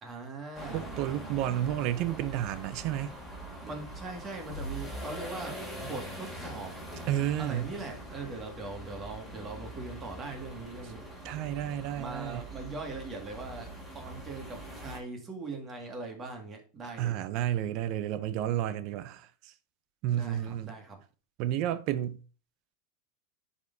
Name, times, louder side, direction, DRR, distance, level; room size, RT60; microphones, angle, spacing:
voice 1, 0.0-0.8 3.6-6.7 7.4-11.0 12.0-17.1 20.1-21.0, right 3 dB, 25° right, 2.1 m, -41 dB
sound 1, 0.5-15.0, right 1 dB, 5° left, 2.9 m, -43 dB
voice 2, 0.7-3.1 7.1-7.8 11.2-12.4 17.0-19.5 20.0-20.7 21.4-22.2, right 12 dB, 55° right, 0.5 m, -31 dB
10.5 x 4.3 x 2.8 m
supercardioid pair, 120°, 0 cm